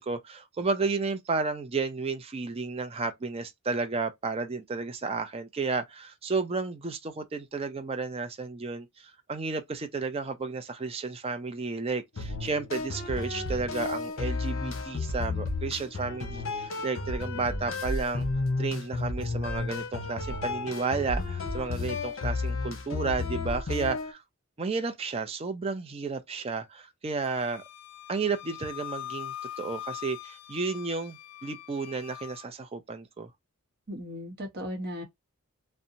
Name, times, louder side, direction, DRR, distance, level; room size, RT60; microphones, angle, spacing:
voice 1, 0.0-18.3 18.6-24.2 24.6-27.6 28.1-33.3, right 4 dB, 25° right, 0.4 m, -32 dB
sound 1, 12.2-24.1, left 3 dB, 60° left, 0.8 m, -32 dB
Wind instrument woodwind instrument, 27.3-32.5, left 13 dB, 90° left, 0.4 m, -42 dB
voice 2, 33.9-35.0, equal, 45° right, 0.9 m, -36 dB
2.8 x 2.1 x 2.5 m
head